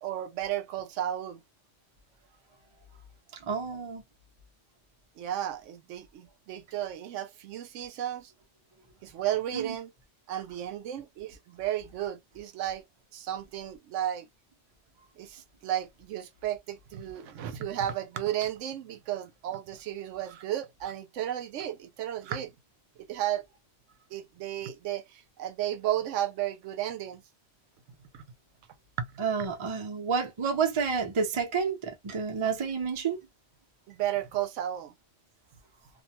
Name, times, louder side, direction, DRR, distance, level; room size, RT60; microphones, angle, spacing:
voice 1, 0.0-1.4 5.2-8.3 9.0-9.9 10.3-12.8 13.1-14.3 15.2-22.5 23.1-23.4 24.1-27.2 28.1-28.2 29.0-29.1 29.4-29.5 33.9-34.9, right 12 dB, 80° right, 0.9 m, -33 dB
voice 2, 3.4-4.0 9.5-9.8 29.2-33.2, right 6 dB, 35° right, 0.5 m, -29 dB
2.5 x 2.1 x 2.8 m
omnidirectional pair, 1.2 m